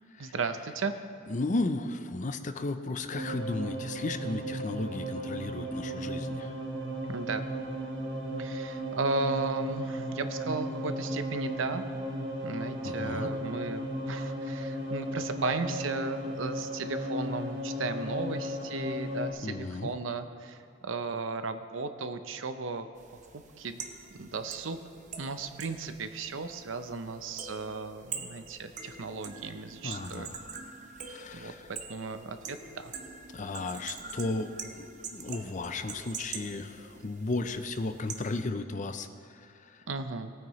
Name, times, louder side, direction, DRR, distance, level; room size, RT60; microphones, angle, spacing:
voice 1, 0.2-0.9 7.1-7.5 8.4-11.8 12.4-20.6 20.8-22.9 23.6-23.8 24.1-24.8 25.2-30.4 31.3-31.5 31.9-32.9 39.9-40.3, right 4 dB, 85° right, 9 dB, 0.7 m, -35 dB
voice 2, 1.3-6.5 12.8-13.3 19.4-19.9 29.8-30.3 31.0-31.6 33.3-34.5 34.8-39.1 39.3-39.8, left 2 dB, 40° left, 9 dB, 0.6 m, -34 dB
sound 1, 3.1-19.3, equal, 65° right, 1.3 m, -35 dB
sound 2, 23.0-38.4, right 5 dB, 40° right, 0.8 m, -45 dB
18.0 x 9.1 x 3.1 m, 2.4 s
head